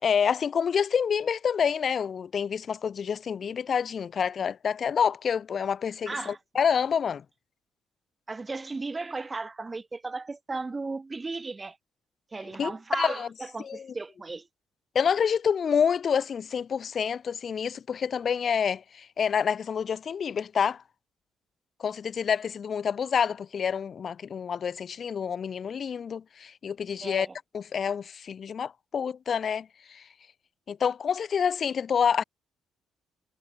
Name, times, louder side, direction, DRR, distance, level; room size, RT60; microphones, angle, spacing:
voice 1, 0.0-7.2 12.6-13.3 13.6-13.9 14.9-20.8 21.8-27.3 27.5-30.1 30.7-32.2, left 7 dB, 50° left, 6.1 m, -28 dB
voice 2, 6.1-6.4 8.3-11.8 12.3-14.5 27.0-27.3, right 3 dB, 25° right, 5.1 m, -35 dB
cardioid pair, 90°, 0 cm